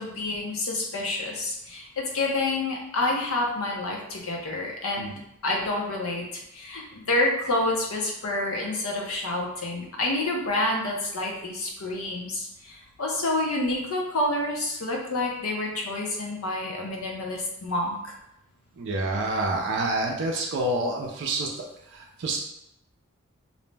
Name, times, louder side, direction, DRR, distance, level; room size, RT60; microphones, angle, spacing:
voice 1, 0.0-5.1 5.4-18.1, left 2 dB, 80° left, 0 dB, 0.6 m, -28 dB
voice 2, 18.8-21.6 21.9-22.4, right 2 dB, 55° right, -1 dB, 0.4 m, -28 dB
2.5 x 2.0 x 3.2 m, 0.81 s
head